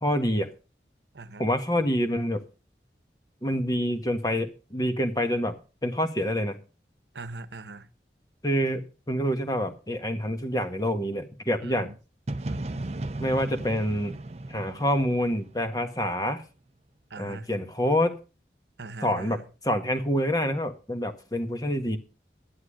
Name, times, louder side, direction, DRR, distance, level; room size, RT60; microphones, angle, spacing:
voice 1, 0.0-0.5 1.4-2.4 3.4-5.5 5.8-6.6 8.4-11.9 13.2-14.1 14.5-16.4 17.2-18.2 19.0-19.4 19.6-22.0, equal, 20° left, 1.5 m, -27 dB
voice 2, 1.1-1.5 7.1-7.9 11.6-12.0 12.5-13.0 17.1-17.5 18.8-19.5, right 3 dB, 80° right, 0.9 m, -42 dB
sound 1, 12.3-16.1, right 2 dB, 40° right, 0.6 m, -36 dB
11.5 x 11.0 x 5.0 m
head